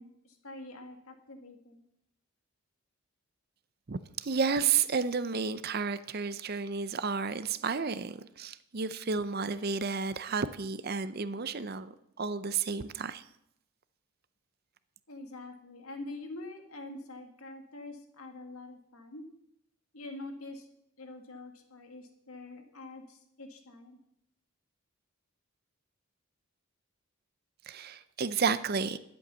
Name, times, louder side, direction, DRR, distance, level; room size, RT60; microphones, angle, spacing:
voice 1, 0.0-1.8 15.1-19.3 19.9-20.7 21.0-24.0, left 2 dB, 80° left, 1.9 m, -45 dB
voice 2, 3.9-13.2 27.7-29.0, right 5 dB, 45° right, 0.6 m, -32 dB
11.5 x 7.9 x 6.9 m
head